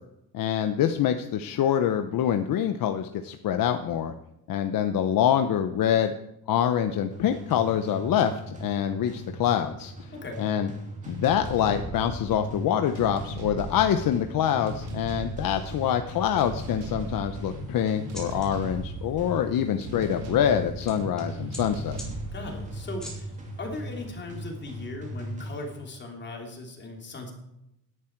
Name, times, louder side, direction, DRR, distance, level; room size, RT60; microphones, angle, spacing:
voice 1, 0.3-4.1 4.5-6.1 6.5-10.1 10.4-10.7 11.1-22.0, left 9 dB, 60° left, 7 dB, 0.9 m, -25 dB
sound 1, 7.1-26.1, right 1 dB, 20° right, 2.6 m, -39 dB
voice 2, 10.1-10.5 22.3-27.3, left 2 dB, 30° left, 2 dB, 3.0 m, -38 dB
sound 2, 11.0-23.8, right 1 dB, 90° right, 4.0 m, -39 dB
sound 3, 16.8-24.9, equal, ahead, 4.3 m, -50 dB
16.5 x 11.5 x 4.6 m, 0.86 s
cardioid pair, 175°, 39 cm